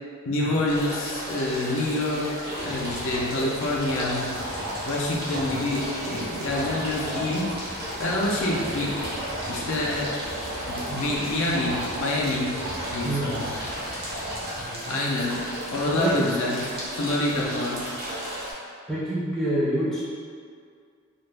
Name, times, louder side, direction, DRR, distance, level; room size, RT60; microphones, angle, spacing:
voice 1, 0.3-2.3 2.6-4.3 4.9-7.5 8.0-9.0 9.5-10.1 10.7-12.6 12.9-13.4 14.9-15.4 15.7-16.7 17.0-17.8, left 2 dB, 65° left, -4 dB, 0.4 m, -27 dB
sound 1, 0.6-18.5, equal, 45° right, 0.6 m, -34 dB
sound 2, 2.5-14.6, equal, 80° right, 0.8 m, -37 dB
voice 2, 5.3-5.7 10.9-11.1 13.1-13.4 14.6-15.1 15.9-16.2 18.9-20.0, right 1 dB, ahead, -10 dB, 0.5 m, -28 dB
2.3 x 2.0 x 3.2 m, 2.2 s
head